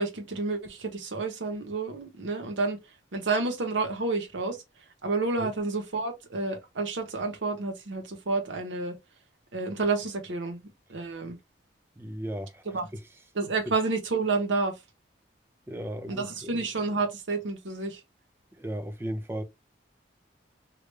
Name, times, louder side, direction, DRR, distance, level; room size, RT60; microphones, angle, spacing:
voice 1, 0.0-2.8 3.1-4.6 5.0-9.0 9.5-10.6 10.9-11.4 12.7-12.8 13.3-14.8 16.1-18.0, right 3 dB, 85° right, 0.8 m, -30 dB
voice 2, 12.0-13.0 15.7-16.5 18.5-19.4, equal, 10° right, 0.4 m, -36 dB
3.2 x 2.3 x 3.2 m
head